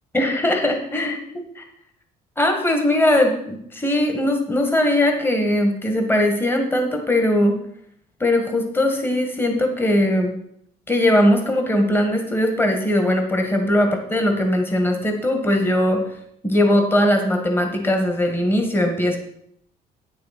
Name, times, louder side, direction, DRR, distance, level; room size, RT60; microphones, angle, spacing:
voice 1, 0.1-1.6 2.4-7.5 8.2-10.3 10.9-16.0 16.4-19.2, left 1 dB, 15° left, 4 dB, 1.8 m, -20 dB
9.3 x 6.6 x 6.1 m, 0.69 s
cardioid pair, 110°, 17 cm